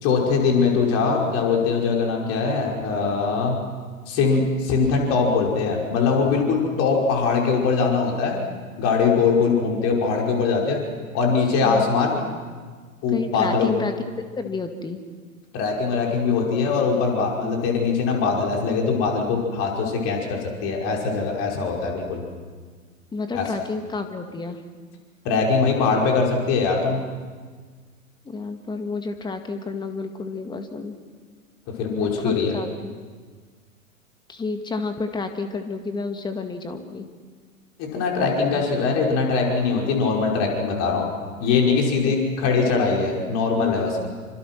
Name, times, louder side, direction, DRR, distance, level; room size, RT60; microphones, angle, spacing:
voice 1, 0.0-3.6 4.1-8.4 8.8-10.8 11.1-12.2 13.0-13.7 15.5-22.2 23.3-23.4 25.2-27.0 31.8-32.6 37.8-41.1 41.4-44.1, left 5 dB, 35° left, 0 dB, 5.4 m, -22 dB
voice 2, 11.6-12.4 13.1-15.0 23.1-24.6 28.2-31.0 31.9-32.9 34.3-37.1 42.1-42.5 42.9-43.0, left 4 dB, 10° left, 7 dB, 2.0 m, -30 dB
28.0 x 25.5 x 6.2 m, 1.5 s
figure-of-eight pair, 100°, 43 cm